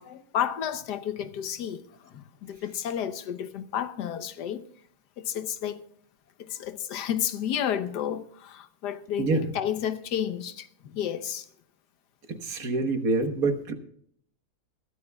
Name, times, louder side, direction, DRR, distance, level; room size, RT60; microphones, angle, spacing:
voice 1, 0.0-4.6 5.2-5.8 6.4-11.4 12.6-12.7, left 9 dB, 90° left, 1.4 m, -31 dB
voice 2, 12.3-13.7, right 3 dB, 60° right, 1.7 m, -26 dB
21.5 x 13.0 x 2.3 m
omnidirectional pair, 1.7 m